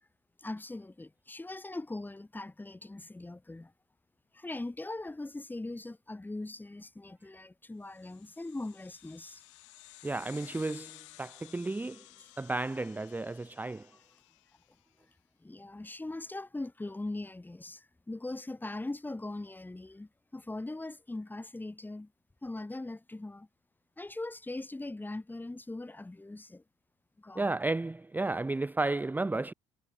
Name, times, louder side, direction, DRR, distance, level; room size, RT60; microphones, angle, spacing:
voice 1, 0.4-3.7 4.3-9.4 15.4-22.1 22.4-23.5 24.0-26.6 27.2-27.5, left 2 dB, 10° left, 1.4 m, -40 dB
sound 1, 7.9-14.7, left 21 dB, 90° left, 5.4 m, -55 dB
voice 2, 10.0-12.1 12.4-13.9 27.3-29.5, right 2 dB, 10° right, 0.6 m, -33 dB
hypercardioid pair, 65°, 15 cm